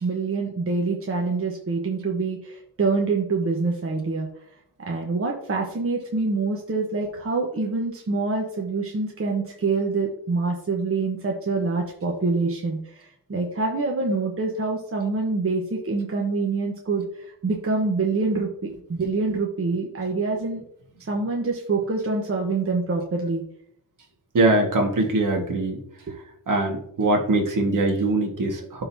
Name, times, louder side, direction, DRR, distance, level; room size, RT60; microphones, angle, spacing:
voice 1, 0.0-4.3 4.9-20.6 21.0-23.4 26.1-26.2, right 3 dB, 35° right, 0 dB, 1.1 m, -26 dB
voice 2, 24.3-25.8 26.5-28.8, right 2 dB, 55° right, 2 dB, 1.7 m, -22 dB
11.5 x 3.9 x 2.8 m, 0.69 s
cardioid pair, 90°, 37 cm